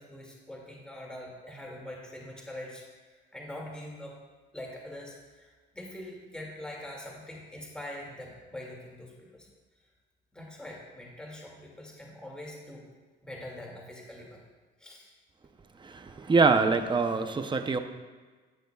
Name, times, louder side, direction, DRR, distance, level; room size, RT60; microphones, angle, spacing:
voice 1, 0.0-4.2 4.5-9.5 10.3-12.9 13.2-14.4 14.8-15.1 16.1-16.3, left 1 dB, 5° left, -2 dB, 2.2 m, -43 dB
voice 2, 15.8-17.8, right 4 dB, 25° right, 8 dB, 0.7 m, -24 dB
19.0 x 6.5 x 2.3 m, 1.4 s
cardioid pair, 90°, 20 cm